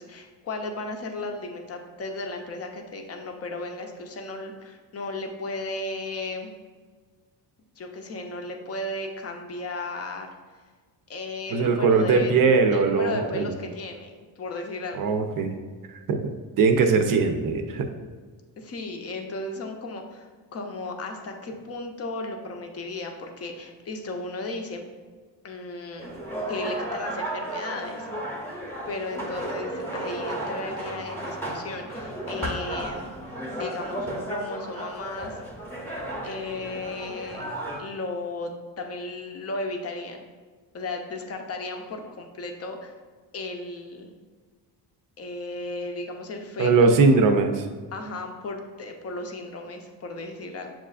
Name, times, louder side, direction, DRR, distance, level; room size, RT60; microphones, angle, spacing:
voice 1, 0.0-6.5 7.8-10.3 11.1-12.3 12.7-15.0 18.6-24.9 25.4-26.1 26.5-28.1 28.9-33.1 33.5-35.4 36.2-40.2 40.7-42.9 43.3-44.1 45.2-47.0 47.9-50.7, left 2 dB, 35° left, 3 dB, 0.5 m, -35 dB
voice 2, 11.5-13.5 14.9-15.6 15.9-16.3 16.6-17.9 46.6-47.7, right 4 dB, 50° right, 6 dB, 0.5 m, -20 dB
sound 1, 26.0-37.8, right 1 dB, 5° left, 0.8 m, -34 dB
7.3 x 2.4 x 2.3 m, 1.5 s
cardioid pair, 125°, 43 cm